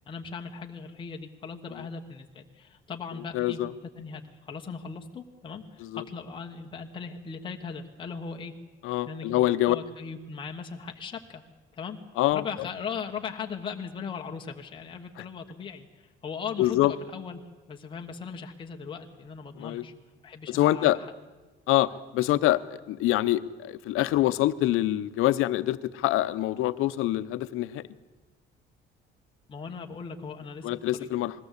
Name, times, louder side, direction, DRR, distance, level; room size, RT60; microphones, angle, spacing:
voice 1, 0.1-8.5 9.0-9.4 9.7-11.4 11.7-12.0 12.3-15.9 16.2-17.4 17.7-19.9 20.2-21.1 29.5-31.1 31.3-31.4, left 6 dB, 25° left, 2 dB, 1.2 m, -38 dB
voice 2, 3.3-3.7 5.8-6.0 8.8-9.8 12.2-12.4 16.6-16.9 19.6-19.8 20.5-21.0 21.7-27.8 30.6-31.4, left 15 dB, 90° left, 14 dB, 0.8 m, -25 dB
20.5 x 16.0 x 8.2 m, 1.2 s
cardioid pair, 175°, 21 cm